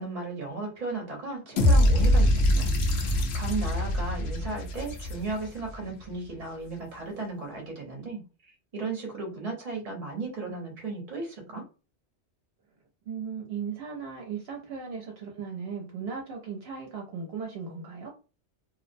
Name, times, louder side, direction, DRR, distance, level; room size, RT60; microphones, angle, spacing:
voice 1, 0.0-8.2 8.7-11.6, right 3 dB, 40° right, 1 dB, 0.8 m, -35 dB
sound 1, 1.6-5.7, left 1 dB, 70° left, 0.8 m, -23 dB
voice 2, 13.1-18.1, right 6 dB, 65° right, -1 dB, 0.8 m, -37 dB
2.5 x 2.0 x 2.5 m, 0.34 s
omnidirectional pair, 1.2 m